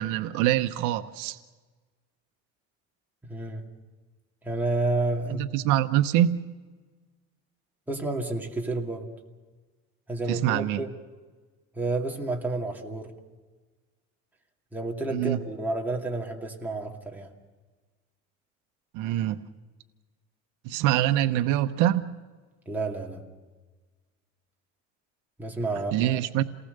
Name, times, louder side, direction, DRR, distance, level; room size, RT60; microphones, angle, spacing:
voice 1, 0.0-1.4 5.3-6.4 10.3-10.8 15.1-15.4 18.9-19.4 20.6-22.1 25.9-26.4, right 12 dB, 75° right, 10 dB, 0.9 m, -24 dB
voice 2, 3.2-3.7 4.4-5.5 7.9-9.1 10.1-10.9 11.7-13.1 14.7-17.3 22.7-23.2 25.4-26.2, right 2 dB, 5° right, -1 dB, 2.3 m, -30 dB
28.5 x 19.0 x 6.7 m, 1.3 s
cardioid pair, 150°, 31 cm